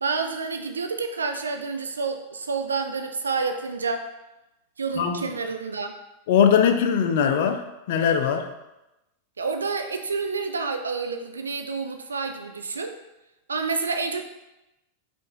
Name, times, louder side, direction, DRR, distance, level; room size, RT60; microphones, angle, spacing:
voice 1, 0.0-4.1 4.8-5.9 9.4-13.0 13.5-14.2, right 4 dB, 75° right, 6 dB, 0.4 m, -29 dB
voice 2, 5.0-5.3 6.3-8.5, left 7 dB, 55° left, 6 dB, 0.4 m, -21 dB
5.4 x 2.5 x 3.8 m, 0.95 s
figure-of-eight pair, 90°, 0 cm